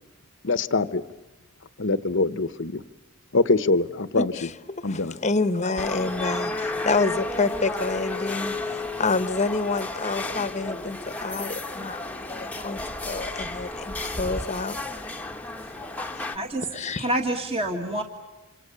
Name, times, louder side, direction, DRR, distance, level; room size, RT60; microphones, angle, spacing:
voice 1, 0.4-1.0 1.8-2.8 3.3-4.3 4.8-5.1, left 3 dB, 55° left, 14 dB, 1.0 m, -23 dB
voice 2, 4.2-14.8 16.2-16.3 16.7-17.1, left 3 dB, 30° left, 13 dB, 1.1 m, -28 dB
sound 1, 5.8-16.4, left 2 dB, 5° left, 1.2 m, -32 dB
voice 3, 15.5-16.6 17.0-18.0, right 1 dB, 25° right, 4 dB, 1.9 m, -29 dB
27.5 x 27.5 x 6.9 m, 1.1 s
head